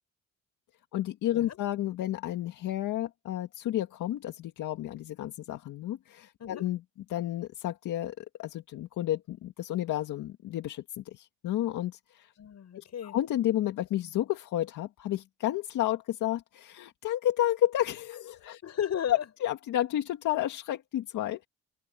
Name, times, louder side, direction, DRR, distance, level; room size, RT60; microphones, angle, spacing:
voice 1, 0.9-6.8 7.1-12.3 12.8-18.6 19.1-21.5, left 13 dB, 85° left, 2.0 m, -31 dB
voice 2, 12.4-13.2 18.6-19.3, left 9 dB, 60° left, 7.0 m, -34 dB
cardioid pair, 90°, 30 cm